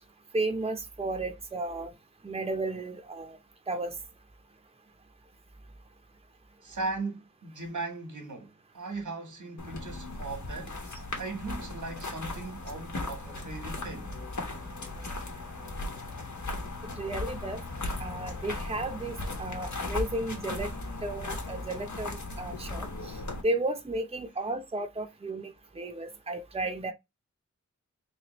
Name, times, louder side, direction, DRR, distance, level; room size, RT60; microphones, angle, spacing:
voice 1, 0.3-1.9 2.2-3.4 3.7-3.9 16.9-17.6 18.0-20.7 21.0-23.1 23.4-26.9, right 2 dB, 20° right, 0.7 m, -33 dB
voice 2, 6.6-14.1, right 3 dB, 90° right, 1.4 m, -38 dB
sound 1, 9.6-23.4, left 2 dB, 75° left, 1.2 m, -37 dB
3.3 x 3.2 x 3.0 m
wide cardioid pair, 85°, 30 cm